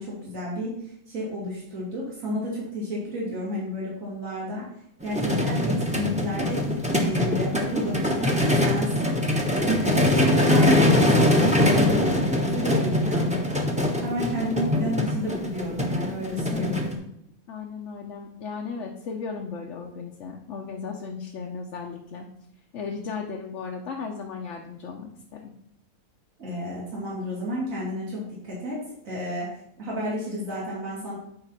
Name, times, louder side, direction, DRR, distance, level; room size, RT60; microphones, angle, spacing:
voice 1, 0.0-4.7 5.0-9.1 9.6-13.6 14.0-16.9 26.4-28.8 29.0-29.5 29.8-31.1, equal, 65° right, -6 dB, 2.9 m, -31 dB
sound 1, 5.0-16.9, left 1 dB, 5° right, 1.0 m, -23 dB
voice 2, 17.5-22.3 22.7-25.5, left 5 dB, 60° left, 0 dB, 1.1 m, -36 dB
9.0 x 4.0 x 5.8 m, 0.76 s
omnidirectional pair, 1.5 m